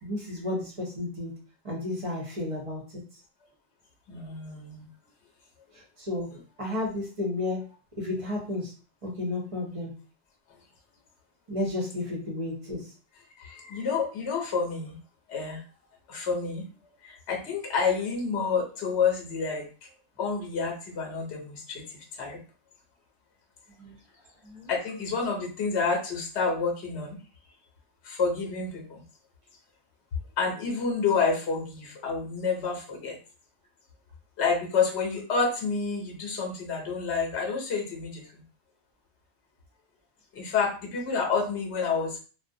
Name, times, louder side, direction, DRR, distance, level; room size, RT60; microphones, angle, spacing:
voice 1, 0.0-1.3 1.6-3.0 6.0-6.3 6.6-7.6 8.0-8.7 9.0-9.9 11.5-12.8 23.8-23.9 24.4-24.7, left 2 dB, 35° right, -2 dB, 0.7 m, -32 dB
voice 2, 4.1-4.9 13.4-14.9 15.3-15.6 16.1-16.6 17.0-19.7 20.2-21.8 22.2-22.4 24.7-27.2 28.0-29.0 30.4-33.2 34.4-38.2 40.3-42.2, left 5 dB, 75° left, 0 dB, 0.9 m, -29 dB
2.4 x 2.0 x 2.6 m, 0.36 s
omnidirectional pair, 1.1 m